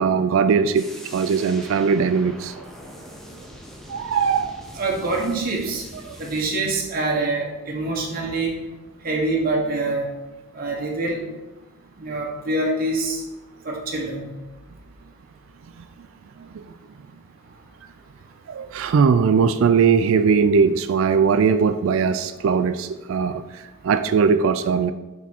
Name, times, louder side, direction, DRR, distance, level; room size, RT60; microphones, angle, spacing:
voice 1, 0.0-2.6 3.9-4.5 6.1-6.2 16.4-16.7 18.5-24.9, right 6 dB, 70° right, 10 dB, 0.3 m, -20 dB
sound 1, 0.7-6.5, equal, ahead, 0.5 m, -42 dB
voice 2, 4.7-5.8 6.2-8.5 9.0-10.1 10.5-11.2 12.0-13.2 13.7-14.3, right 2 dB, 40° right, -1 dB, 1.0 m, -25 dB
6.0 x 3.6 x 4.4 m, 1.1 s
head